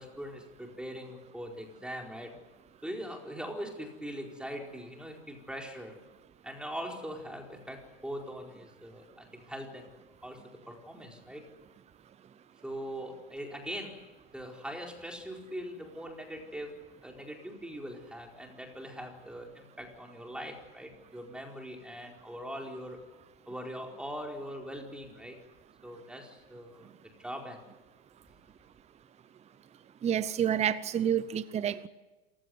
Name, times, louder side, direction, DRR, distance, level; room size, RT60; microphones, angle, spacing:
voice 1, 0.0-2.3 2.8-6.0 6.4-11.5 12.6-23.0 23.5-25.4 25.8-27.6, equal, 5° right, 1 dB, 4.5 m, -42 dB
voice 2, 30.0-31.9, right 9 dB, 20° right, 14 dB, 0.8 m, -29 dB
27.5 x 16.0 x 9.5 m, 1.2 s
supercardioid pair, 125°, 31 cm